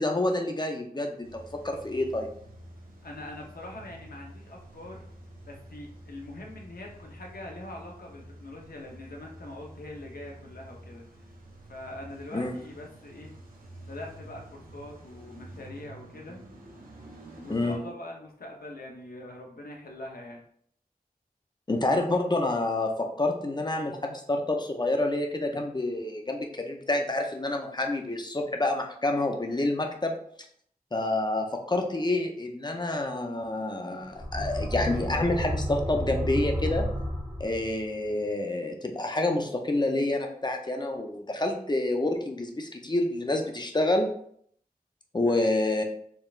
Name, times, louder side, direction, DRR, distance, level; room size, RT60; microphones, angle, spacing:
voice 1, 0.0-2.3 12.3-12.5 17.5-17.8 21.7-30.1 30.9-36.9 37.4-44.1 45.1-45.8, left 2 dB, 30° left, 3 dB, 0.6 m, -28 dB
Car / Engine starting / Idling, 1.2-17.8, right 1 dB, 65° right, 1.0 m, -48 dB
voice 2, 3.0-5.0 5.4-11.0 11.7-13.3 13.8-16.4 17.4-20.4 45.2-45.5, left 1 dB, 75° left, 0 dB, 0.8 m, -43 dB
sound 1, 34.1-37.9, equal, 10° right, 1.1 m, -31 dB
4.4 x 3.4 x 2.4 m, 0.65 s
wide cardioid pair, 60°, 16 cm